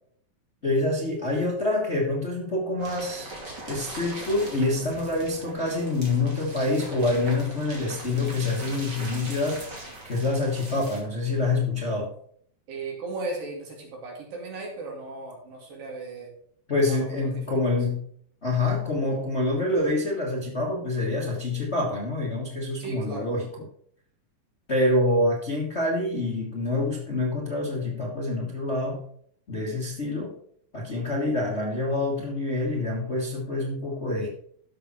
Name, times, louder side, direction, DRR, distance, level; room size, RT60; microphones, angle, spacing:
voice 1, 0.6-3.4 3.7-9.7 10.0-12.1 16.7-18.1 18.4-23.5 24.7-29.0 29.5-30.4 30.7-34.3, left 2 dB, 55° left, -2 dB, 0.7 m, -26 dB
sound 1, 2.8-11.0, right 2 dB, 35° right, 2.8 m, -40 dB
voice 2, 12.7-16.3 16.9-17.6 22.8-23.3, right 3 dB, 90° right, -1 dB, 4.4 m, -36 dB
12.0 x 6.8 x 4.2 m, 0.63 s
omnidirectional pair, 3.9 m